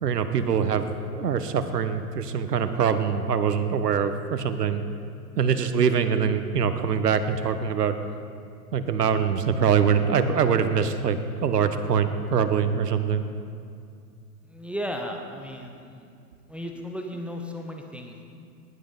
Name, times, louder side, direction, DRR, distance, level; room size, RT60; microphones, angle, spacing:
voice 1, 0.0-4.8 5.4-8.0 8.7-13.2, right 7 dB, 80° right, 10 dB, 1.2 m, -24 dB
voice 2, 14.4-16.1 16.5-18.2, equal, 5° right, 2 dB, 0.7 m, -35 dB
18.0 x 11.5 x 4.0 m, 2.4 s
hypercardioid pair, 110°, 47 cm